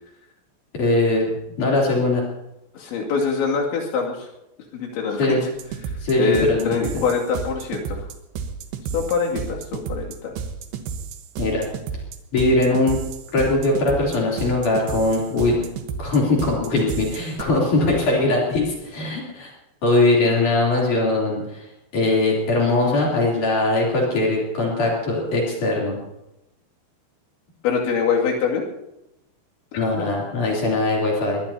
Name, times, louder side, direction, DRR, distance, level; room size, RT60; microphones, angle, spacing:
voice 1, 0.7-2.2 5.2-5.4 6.0-7.1 11.4-11.7 12.3-13.0 13.3-15.6 16.0-19.5 19.8-21.6 21.9-26.0 29.8-31.4, left 2 dB, 45° left, -3 dB, 4.5 m, -21 dB
voice 2, 2.7-4.2 4.7-5.4 6.2-8.0 8.9-10.3 27.6-28.6 29.7-29.8, left 5 dB, 85° left, -2 dB, 4.8 m, -24 dB
sound 1, 5.6-17.4, right 6 dB, 75° right, 3.0 m, -32 dB
22.0 x 19.0 x 2.8 m, 0.90 s
omnidirectional pair, 5.1 m